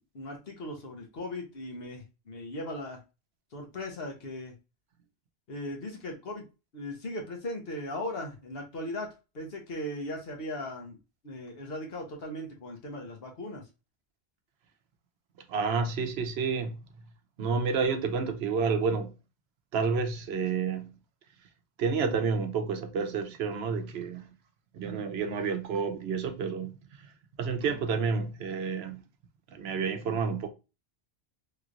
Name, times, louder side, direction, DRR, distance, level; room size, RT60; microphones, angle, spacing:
voice 1, 0.1-3.0 3.5-4.6 5.5-6.4 6.7-11.0 11.2-13.7, left 1 dB, 65° left, 1.2 m, -38 dB
voice 2, 15.5-16.8 17.4-19.1 19.7-20.9 21.8-24.3 24.7-26.7 27.4-29.0 29.5-30.5, right 5 dB, 70° right, 0.8 m, -29 dB
3.3 x 2.9 x 2.4 m
omnidirectional pair, 1.1 m